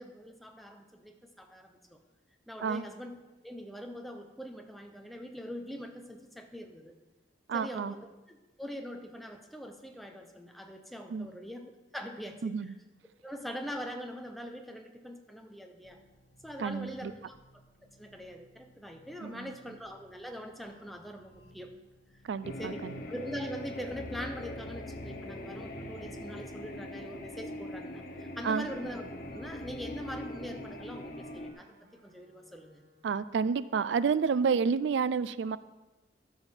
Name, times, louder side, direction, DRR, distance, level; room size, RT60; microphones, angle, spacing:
voice 1, 0.0-2.0 2.5-3.2 3.4-6.9 7.5-12.5 13.2-16.0 16.4-17.4 18.0-21.7 22.6-22.8 23.1-29.0 29.3-32.8, equal, ahead, 4 dB, 0.7 m, -43 dB
voice 2, 7.5-7.9 11.1-11.3 12.4-12.7 16.6-17.1 19.2-19.5 22.2-23.0 28.4-28.7 33.0-35.6, right 5 dB, 75° right, 16 dB, 0.4 m, -30 dB
sound 1, 15.8-23.8, equal, 80° left, 1.1 m, -62 dB
sound 2, 22.4-31.5, left 1 dB, 50° left, 1.0 m, -41 dB
Wind instrument woodwind instrument, 28.0-33.4, equal, 55° right, 1.3 m, -60 dB
13.0 x 5.7 x 4.5 m, 1.1 s
head